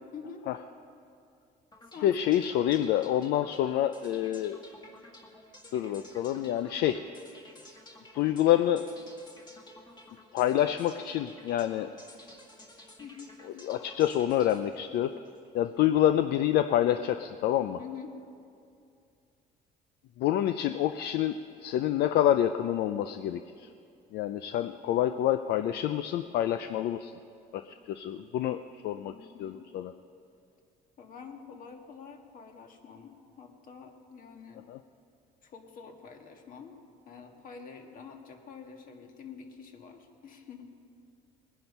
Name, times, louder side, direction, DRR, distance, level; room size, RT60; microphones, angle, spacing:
voice 1, 0.1-0.4 1.9-2.2 13.0-13.3 17.8-18.2 24.8-25.1 29.1-29.7 31.0-34.6 35.4-36.8 37.0-40.7, left 6 dB, 55° left, 4 dB, 1.6 m, -47 dB
sound 1, 1.7-15.8, left 1 dB, 25° left, 1.9 m, -53 dB
voice 2, 2.0-4.6 5.7-7.0 8.1-8.9 10.3-11.9 13.6-15.1 15.5-17.8 20.2-23.7 24.1-27.1 27.5-29.9 34.7-34.8, left 11 dB, 75° left, 10 dB, 0.5 m, -27 dB
20.0 x 10.5 x 5.5 m, 2.4 s
cardioid pair, 110°, 17 cm